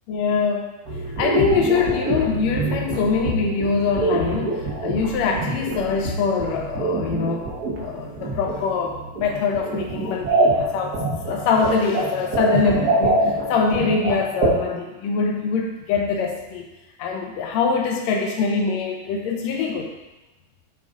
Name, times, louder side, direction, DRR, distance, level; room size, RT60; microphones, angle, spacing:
voice 1, 0.1-0.7 1.2-7.4 7.8-11.0 11.3-16.7 17.0-19.9, left 5 dB, 75° left, 0 dB, 1.9 m, -23 dB
sound 1, 0.9-14.5, right 2 dB, 75° right, 0.8 m, -25 dB
9.1 x 3.7 x 3.9 m, 1.0 s
omnidirectional pair, 3.5 m